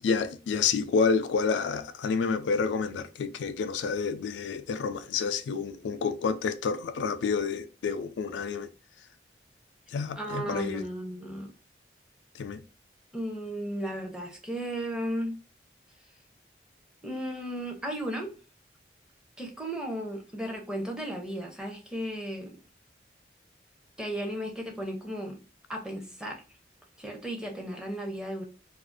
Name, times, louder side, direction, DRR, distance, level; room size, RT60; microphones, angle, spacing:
voice 1, 0.0-8.7 9.9-10.8 12.3-12.6, left 5 dB, 85° left, 0.3 m, -29 dB
voice 2, 10.2-11.5 13.1-15.3 17.0-18.4 19.4-22.6 24.0-25.4 25.7-26.4 27.0-28.4, equal, 5° right, 0.5 m, -35 dB
2.4 x 2.3 x 2.4 m
head